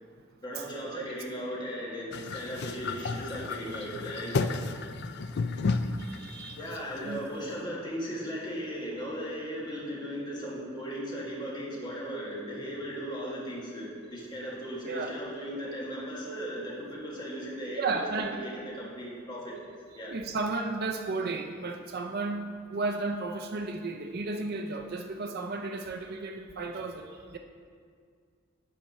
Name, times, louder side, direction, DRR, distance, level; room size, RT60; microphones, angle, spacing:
voice 1, 0.4-4.5 6.5-19.5 19.9-20.1, equal, 20° left, -5 dB, 1.7 m, -37 dB
sound 1, 2.1-7.5, left 4 dB, 55° left, 0.4 m, -33 dB
voice 2, 6.0-6.6 7.1-7.2 14.9-15.1 17.8-18.4 20.1-27.0 27.3-27.4, right 3 dB, 50° right, 4 dB, 0.5 m, -33 dB
10.5 x 4.2 x 5.7 m, 2.1 s
head